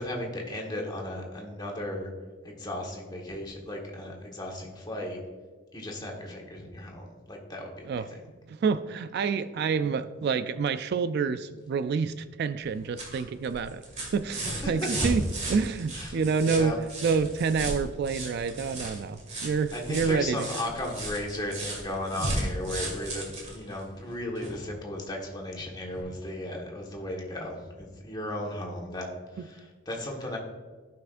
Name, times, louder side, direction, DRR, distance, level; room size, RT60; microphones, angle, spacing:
voice 1, 0.0-2.1 2.4-5.2 5.7-8.1 14.4-14.9 15.9-16.8 19.7-30.4, left 1 dB, 20° left, 0 dB, 1.5 m, -35 dB
voice 2, 8.5-13.8 14.1-16.7 17.0-20.5 22.2-22.3, right 5 dB, 55° right, 12 dB, 0.3 m, -28 dB
sound 1, 12.6-24.6 25.9-26.0, right 1 dB, 35° right, 2.0 m, -35 dB
15.5 x 5.7 x 2.5 m, 1.4 s
head